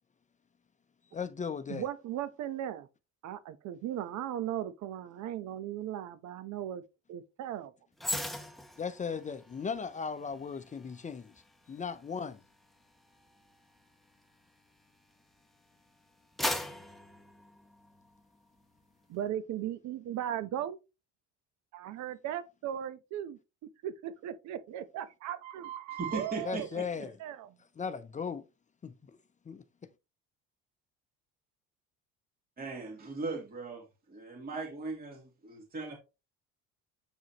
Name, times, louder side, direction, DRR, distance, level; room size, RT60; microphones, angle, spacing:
voice 1, 1.1-1.8 8.8-11.3 11.7-12.4 26.5-27.2 27.8-28.4 28.8-29.2 29.5-29.6, left 6 dB, 25° left, 0.7 m, -37 dB
voice 2, 1.7-2.9 3.2-6.8 7.1-7.7 19.1-20.8 21.7-23.4 23.8-26.8 27.2-27.5, right 11 dB, 65° right, 1.0 m, -37 dB
sound 1, 8.0-15.4 15.9-18.2 18.6-18.8, left 1 dB, ahead, 1.0 m, -41 dB
voice 3, 25.9-26.7 32.6-35.9, right 3 dB, 30° right, 2.7 m, -38 dB
7.8 x 4.8 x 3.0 m
cardioid pair, 100°, 30 cm